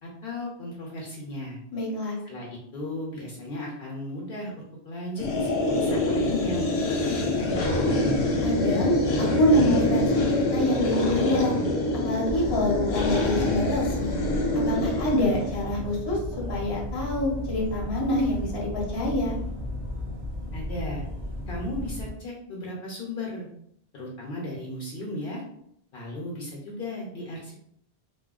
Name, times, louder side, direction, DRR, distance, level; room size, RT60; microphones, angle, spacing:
voice 1, 0.0-1.6 2.3-5.5 5.8-8.0 20.5-21.0 21.5-23.5 23.9-25.4 25.9-27.6, left 1 dB, 65° left, -3 dB, 0.7 m, -36 dB
voice 2, 1.7-2.2 8.4-11.5 12.0-14.2 14.6-16.2 16.5-19.4, left 1 dB, 25° left, -3 dB, 0.6 m, -26 dB
sound 1, 5.2-15.6, left 1 dB, 85° left, 0.9 m, -25 dB
sound 2, 11.4-16.7, right 2 dB, 55° right, 0.8 m, -43 dB
sound 3, 12.3-22.1, left 1 dB, 25° right, 0.9 m, -34 dB
2.7 x 2.1 x 2.3 m, 0.72 s
omnidirectional pair, 1.1 m